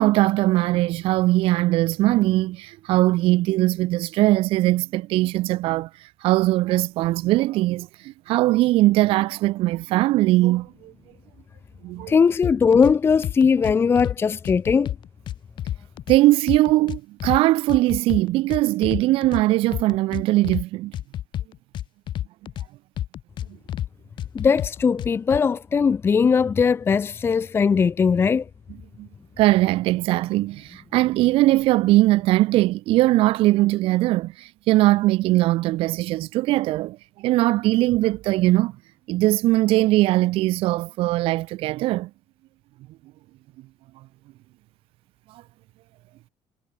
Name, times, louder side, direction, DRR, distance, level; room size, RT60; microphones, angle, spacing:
voice 1, 0.0-10.9 11.8-12.1 16.1-20.9 29.0-29.1 29.4-38.7 39.1-42.1 45.3-45.4, right 17 dB, 65° right, 0.4 m, -20 dB
voice 2, 12.1-14.9 24.3-28.5, left 6 dB, 25° left, 0.8 m, -19 dB
sound 1, 12.4-12.9 13.2-14.2 14.4-16.2 16.5-17.4 17.7-19.4 19.7-20.6 20.9-22.7 23.0-23.9 24.2-25.4, left 12 dB, 50° left, 2.1 m, -30 dB
cardioid pair, 160°, 10 cm